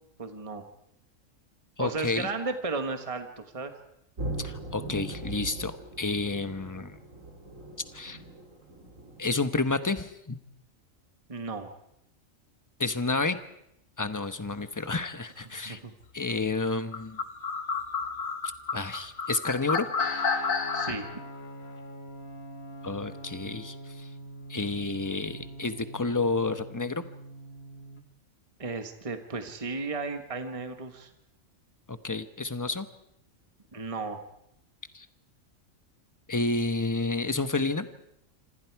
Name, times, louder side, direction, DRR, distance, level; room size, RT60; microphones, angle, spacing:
voice 1, 0.2-0.6 1.8-3.7 11.3-11.7 15.6-15.9 20.7-21.1 28.6-31.1 33.7-34.3, right 3 dB, 25° right, 6 dB, 1.4 m, -34 dB
voice 2, 1.8-2.3 4.4-7.0 7.9-8.2 9.2-10.4 12.8-13.4 14.0-15.8 16.1-17.2 18.7-19.9 22.8-24.1 24.5-27.0 31.9-32.9 34.9-35.1 36.3-37.9, left 3 dB, 15° left, 10 dB, 1.0 m, -30 dB
sound 1, 4.2-9.2, right 2 dB, 75° right, 4.2 m, -40 dB
sound 2, 16.9-20.9, left 5 dB, 85° left, 2.2 m, -30 dB
Guitar, 20.0-28.0, equal, 50° left, 1.8 m, -43 dB
26.5 x 26.0 x 4.7 m, 0.78 s
omnidirectional pair, 1.4 m